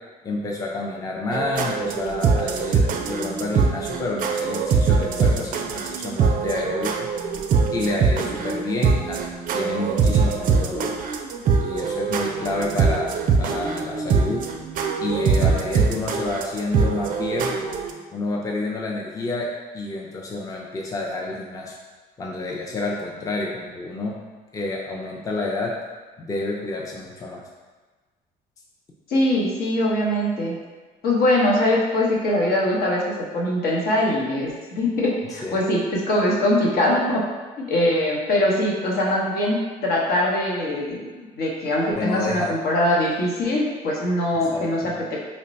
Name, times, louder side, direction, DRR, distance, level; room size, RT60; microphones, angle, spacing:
voice 1, 0.2-7.1 7.7-9.2 9.5-10.9 11.6-14.4 15.0-17.6 18.1-19.5 19.7-21.8 22.2-24.2 24.5-25.7 26.2-27.4 35.3-35.6 41.9-42.6 44.3-44.9, left 2 dB, 20° left, -2 dB, 0.4 m, -29 dB
sound 1, 1.3-17.9, right 5 dB, 55° right, 0.4 m, -23 dB
voice 2, 29.1-30.5 31.0-33.0 33.3-37.2 37.6-41.1 41.4-45.2, left 1 dB, 65° left, -3 dB, 0.9 m, -22 dB
3.1 x 2.2 x 4.0 m, 1.3 s
cardioid pair, 110°, 17 cm